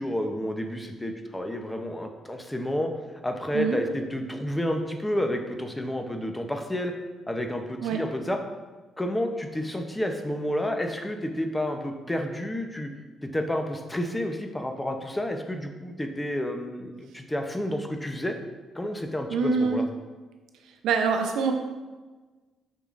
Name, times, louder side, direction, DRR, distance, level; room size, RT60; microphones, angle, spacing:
voice 1, 0.0-2.9 3.2-6.9 7.3-8.4 9.0-12.9 13.2-18.3 18.7-19.8, left 1 dB, 10° left, 5 dB, 0.7 m, -30 dB
voice 2, 19.3-19.8 20.8-21.5, right 5 dB, 85° right, 4 dB, 0.6 m, -24 dB
6.9 x 5.5 x 2.5 m, 1.3 s
cardioid pair, 90°, 0 cm